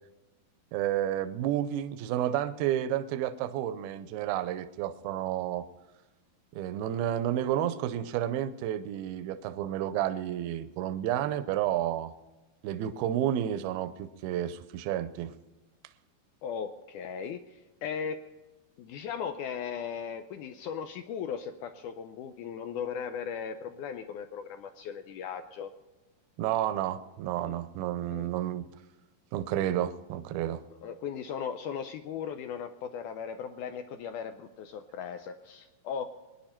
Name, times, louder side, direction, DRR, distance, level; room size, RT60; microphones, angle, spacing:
voice 1, 0.7-5.7 6.5-12.1 12.6-15.3 26.4-28.7 29.3-30.6, right 11 dB, 85° right, 11 dB, 2.5 m, -31 dB
voice 2, 16.4-18.2 18.8-25.7 28.1-28.3 30.8-36.1, left 7 dB, 85° left, 8 dB, 1.8 m, -37 dB
22.0 x 10.5 x 4.4 m, 1.1 s
omnidirectional pair, 4.3 m